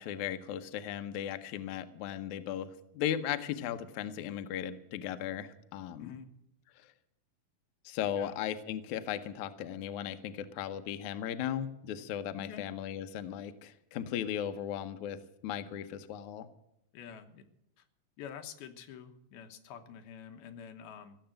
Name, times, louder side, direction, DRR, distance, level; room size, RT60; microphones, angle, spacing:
voice 1, 0.0-6.1 6.8-6.9 7.9-16.5, left 10 dB, 70° left, 9 dB, 1.9 m, -37 dB
voice 2, 12.4-12.7 16.9-17.4 18.2-21.2, left 7 dB, 85° left, 7 dB, 3.1 m, -47 dB
16.0 x 7.8 x 9.0 m, 0.80 s
omnidirectional pair, 4.3 m